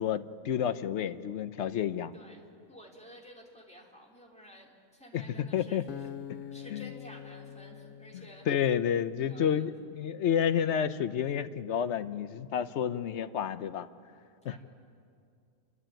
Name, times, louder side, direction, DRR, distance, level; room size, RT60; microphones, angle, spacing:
voice 1, 0.0-2.1 5.1-5.8 6.7-6.9 8.1-13.9 14.4-14.6, left 8 dB, 65° left, 12 dB, 1.0 m, -30 dB
voice 2, 2.1-5.8 6.5-8.5 9.2-9.7 14.4-14.6, equal, 5° left, -1 dB, 2.9 m, -52 dB
Acoustic guitar, 5.9-9.1, left 9 dB, 85° left, 1.1 m, -45 dB
29.0 x 12.5 x 8.9 m, 2.4 s
omnidirectional pair, 1.3 m